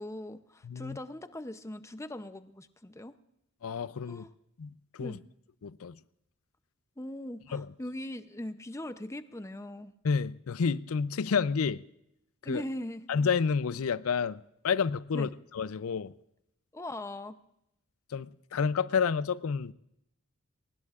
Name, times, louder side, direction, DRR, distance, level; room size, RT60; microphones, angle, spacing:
voice 1, 0.0-3.2 4.1-4.3 5.0-5.2 7.0-9.9 12.4-13.0 15.1-15.3 16.7-17.4, left 1 dB, 15° left, 0.6 m, -40 dB
voice 2, 0.6-1.0 3.6-4.2 4.6-5.2 5.6-6.0 7.5-7.7 10.0-11.8 12.4-12.6 13.1-16.1 18.1-19.7, left 5 dB, 90° left, 0.5 m, -30 dB
22.5 x 19.5 x 2.4 m
head